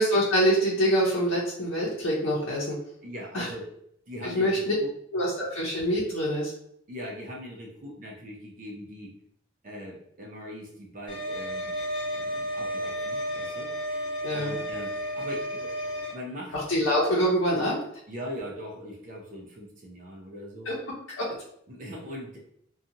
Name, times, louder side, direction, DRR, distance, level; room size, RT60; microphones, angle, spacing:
voice 1, 0.0-2.8 3.3-3.5 4.2-4.7 5.1-6.5 14.2-14.6 16.5-17.8 20.6-20.8 21.2-21.4, equal, 85° left, -7 dB, 0.7 m, -25 dB
voice 2, 3.0-3.7 4.1-4.9 6.9-9.1 9.6-11.8 12.1-13.7 14.3-15.7 16.1-16.6 18.1-20.7 21.7-22.4, equal, 40° right, -1 dB, 0.5 m, -40 dB
sound 1, 11.1-16.1, equal, 25° left, 0.6 m, -32 dB
2.7 x 2.3 x 2.6 m, 0.69 s
head